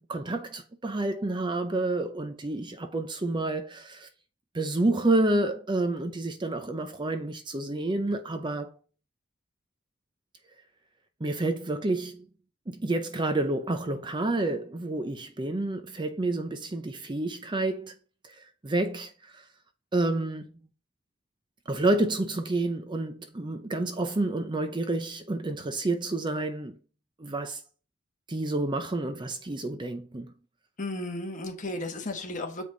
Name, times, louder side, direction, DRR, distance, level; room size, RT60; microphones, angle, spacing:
voice 1, 0.0-4.1 4.5-8.7 11.2-12.3 12.7-17.9 18.2-18.3 18.6-19.4 19.9-20.5 21.7-26.8 27.2-27.6 28.3-30.3, right 2 dB, 25° right, 0.6 m, -29 dB
voice 2, 30.8-32.7, left 2 dB, 40° left, 1.3 m, -34 dB
6.8 x 5.0 x 3.9 m
head